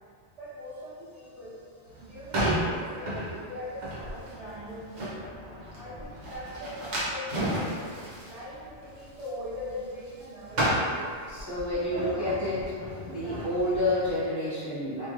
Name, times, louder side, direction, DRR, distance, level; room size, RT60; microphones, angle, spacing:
voice 1, 0.4-5.1 5.7-7.3 8.2-12.3 13.1-13.5, left 1 dB, 30° right, -18 dB, 1.1 m, -41 dB
sound 1, 1.9-10.2 10.5-14.1, equal, 85° right, 1.2 m, -33 dB
voice 2, 11.3-12.6 13.1-15.1, left 1 dB, 25° left, -12 dB, 0.6 m, -29 dB
3.0 x 2.7 x 2.4 m, 2.2 s
omnidirectional pair, 1.2 m